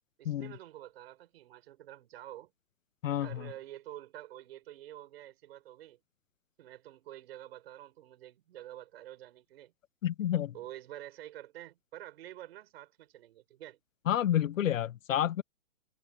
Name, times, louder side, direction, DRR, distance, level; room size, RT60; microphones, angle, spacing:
voice 1, 0.2-2.5 3.2-6.0 6.6-9.7 10.5-13.8, right 13 dB, 45° right, 4.7 m, -48 dB
voice 2, 3.0-3.4 10.0-10.5 14.1-15.4, left 11 dB, 65° left, 0.8 m, -29 dB
hypercardioid pair, 160°, 42 cm